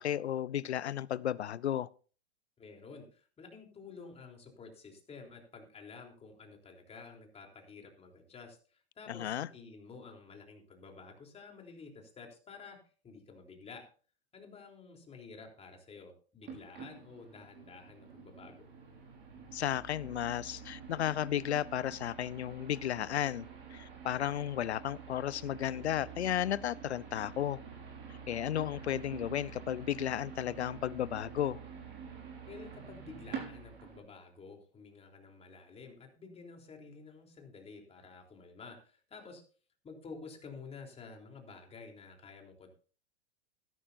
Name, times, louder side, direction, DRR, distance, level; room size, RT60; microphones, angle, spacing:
voice 1, 0.0-1.9 9.1-9.5 19.5-27.6 28.3-31.6, left 11 dB, 85° left, 0.7 m, -34 dB
voice 2, 2.6-12.8 13.0-13.9 14.3-18.7 32.5-39.4 39.8-42.7, left 4 dB, 20° left, 3.6 m, -51 dB
sound 1, 16.4-34.0, right 6 dB, 35° right, 6.1 m, -48 dB
15.5 x 13.0 x 2.7 m
hypercardioid pair, 110°, 32 cm